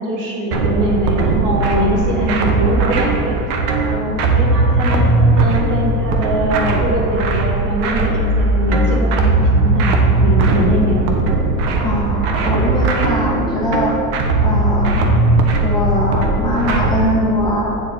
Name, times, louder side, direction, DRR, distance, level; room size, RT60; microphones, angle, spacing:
voice 1, 0.0-3.4 3.8-11.1, right 1 dB, 40° right, -2 dB, 1.9 m, -22 dB
sound 1, 0.5-17.1, right 2 dB, 75° right, 1.3 m, -17 dB
voice 2, 11.8-14.0 14.4-15.0 15.6-17.8, left 1 dB, 10° left, -6 dB, 1.8 m, -21 dB
8.9 x 4.9 x 5.9 m, 2.7 s
supercardioid pair, 110°, 45 cm